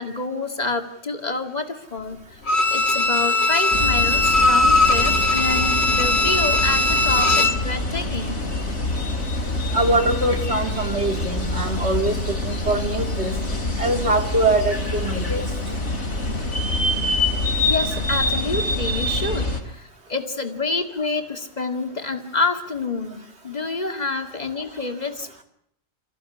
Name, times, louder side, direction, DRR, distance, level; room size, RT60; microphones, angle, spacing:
voice 1, 0.0-2.4 2.7-8.4 17.7-25.4, left 3 dB, 35° left, 6 dB, 2.3 m, -28 dB
Bowed string instrument, 2.5-7.7 8.0-8.1, left 2 dB, 65° left, 1.7 m, -19 dB
sound 1, 3.7-19.6, left 2 dB, 90° left, 3.5 m, -25 dB
voice 2, 9.7-13.3 13.8-15.4, right 2 dB, 65° right, 5 dB, 2.9 m, -23 dB
27.5 x 15.0 x 9.7 m, 0.72 s
omnidirectional pair, 1.2 m